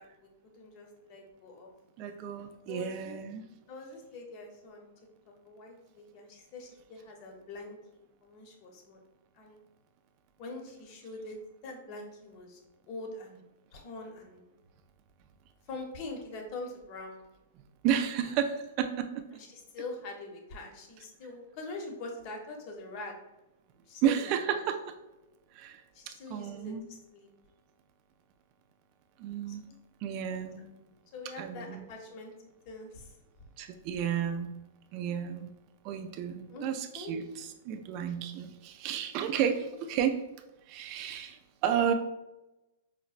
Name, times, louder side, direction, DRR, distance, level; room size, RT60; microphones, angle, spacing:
voice 1, 0.0-1.7 2.0-2.2 2.7-3.2 3.7-4.9 5.3-9.0 9.3-9.6 10.4-12.6 12.9-13.4 13.7-14.4 15.6-17.2 19.3-23.2 23.8-24.6 25.9-27.3 29.5-29.6 31.1-32.3 32.6-33.2 36.5-36.7 36.9-37.1, left 2 dB, 45° left, 2 dB, 0.8 m, -44 dB
voice 2, 2.0-3.4 17.8-19.3 24.0-24.8 25.5-26.8 29.2-29.6 30.0-30.7 31.4-31.9 33.6-34.6 34.9-35.5 35.8-40.2 40.7-41.9, right 9 dB, 45° right, 7 dB, 0.4 m, -32 dB
4.9 x 2.1 x 2.4 m, 0.97 s
hypercardioid pair, 130°, 0 cm